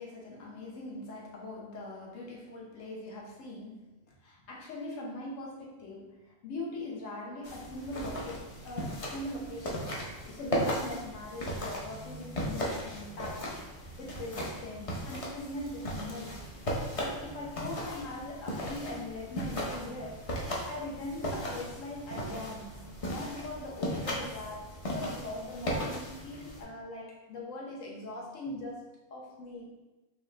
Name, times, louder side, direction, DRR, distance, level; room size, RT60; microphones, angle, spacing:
voice 1, 0.0-3.9 4.2-13.6 14.0-16.5 16.9-20.2 20.7-22.8 23.0-24.7 24.9-28.9 29.1-29.7, left 1 dB, 75° left, -3 dB, 1.2 m, -41 dB
sound 1, 7.4-26.6, equal, 40° left, 0.5 m, -37 dB
4.5 x 2.4 x 3.2 m, 1.1 s
omnidirectional pair, 1.3 m